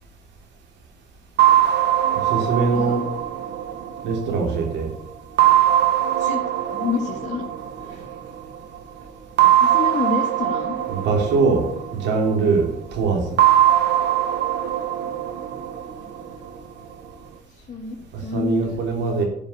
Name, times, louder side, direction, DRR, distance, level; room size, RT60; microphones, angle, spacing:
sound 1, 1.4-4.7 5.4-8.3 9.4-12.5 13.4-16.5, right 11 dB, 70° right, 1.2 m, -21 dB
voice 1, 2.1-3.0 4.0-4.9 10.9-13.4 18.1-19.2, right 4 dB, 90° right, 3 dB, 3.0 m, -22 dB
voice 2, 6.7-7.5 7.8-8.0 9.4-10.7 17.5-18.8 19.1-19.2, left 6 dB, 40° left, -3 dB, 1.9 m, -29 dB
11.5 x 5.4 x 8.3 m, 0.72 s
cardioid pair, 100°, 18 cm